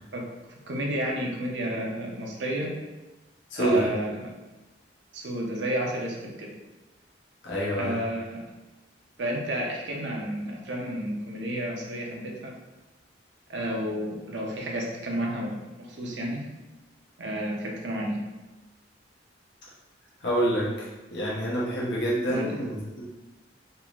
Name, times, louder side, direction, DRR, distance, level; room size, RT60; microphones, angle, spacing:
voice 1, 0.7-2.7 3.5-4.3 5.1-6.5 7.7-8.5 9.2-12.5 13.5-16.4 17.2-18.2 22.3-22.6, right 1 dB, 75° right, -1 dB, 0.7 m, -31 dB
voice 2, 3.5-3.9 7.4-8.0 20.2-23.0, right 1 dB, 70° left, -6 dB, 0.9 m, -27 dB
3.6 x 2.5 x 2.9 m, 1.1 s
head